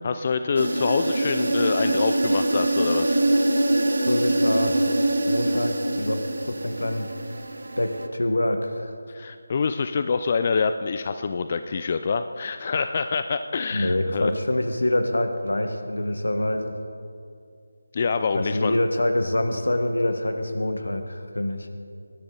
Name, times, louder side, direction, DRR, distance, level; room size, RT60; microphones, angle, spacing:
voice 1, 0.0-3.2 9.1-14.3 17.9-18.8, left 5 dB, 35° left, 9 dB, 0.4 m, -26 dB
sound 1, 0.6-8.1, right 1 dB, 65° right, 1.1 m, -24 dB
voice 2, 4.0-4.8 5.3-7.1 7.8-8.9 13.7-16.8 18.3-21.7, left 1 dB, 80° left, 7 dB, 1.5 m, -25 dB
20.0 x 11.5 x 3.9 m, 2.4 s
figure-of-eight pair, 160°, 0 cm